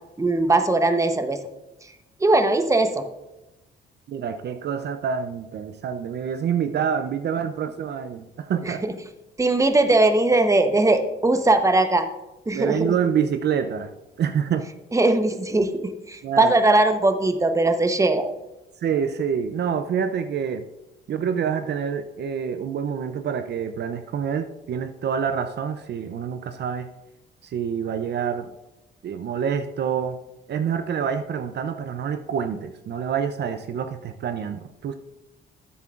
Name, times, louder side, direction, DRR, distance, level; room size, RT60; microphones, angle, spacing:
voice 1, 0.2-1.4 2.2-3.1 8.6-8.9 9.4-12.1 12.5-12.9 14.9-15.7 16.1-18.3, right 2 dB, 15° right, 8 dB, 0.9 m, -20 dB
voice 2, 4.1-8.8 12.5-13.9 14.2-14.7 16.2-16.5 18.8-20.7 21.1-26.9 27.4-28.5 29.0-30.2 30.5-34.9, right 7 dB, 55° right, 9 dB, 0.6 m, -27 dB
12.5 x 8.3 x 2.5 m, 0.97 s
cardioid pair, 90°, 20 cm